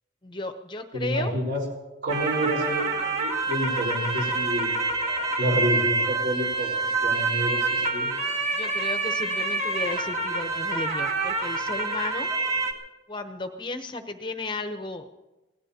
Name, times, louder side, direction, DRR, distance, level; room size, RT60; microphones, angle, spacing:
voice 1, 0.2-1.3 8.5-12.3 13.1-15.2, left 2 dB, 25° left, 7 dB, 0.8 m, -34 dB
voice 2, 0.9-1.6 2.0-4.7 5.4-6.7 7.0-8.1, equal, 55° right, -1 dB, 4.4 m, -28 dB
sound 1, 2.1-12.7, right 3 dB, 35° right, 1.9 m, -27 dB
26.0 x 17.5 x 2.8 m, 1.1 s
head